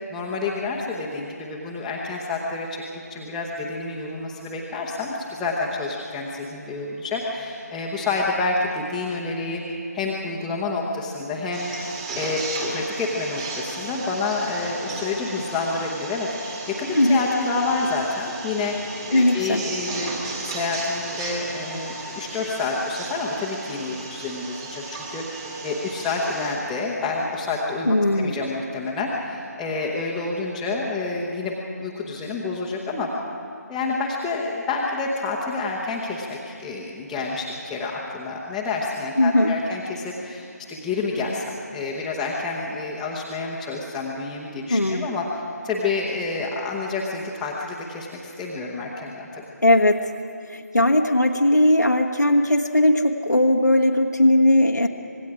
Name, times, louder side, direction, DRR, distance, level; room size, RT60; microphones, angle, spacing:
voice 1, 0.1-2.8 3.1-11.7 12.2-12.4 12.7-18.8 19.1-20.1 20.4-33.1 33.7-45.3 45.6-49.4, left 3 dB, 5° left, -6 dB, 1.0 m, -28 dB
sound 1, 11.5-26.6, right 3 dB, 15° right, 1.8 m, -34 dB
voice 2, 19.1-19.6 27.9-28.3 39.2-39.6 44.7-45.1 49.6-50.1 50.5-54.9, left 1 dB, 85° left, 3 dB, 1.3 m, -18 dB
26.0 x 20.5 x 4.9 m, 2.6 s
figure-of-eight pair, 155°, 9 cm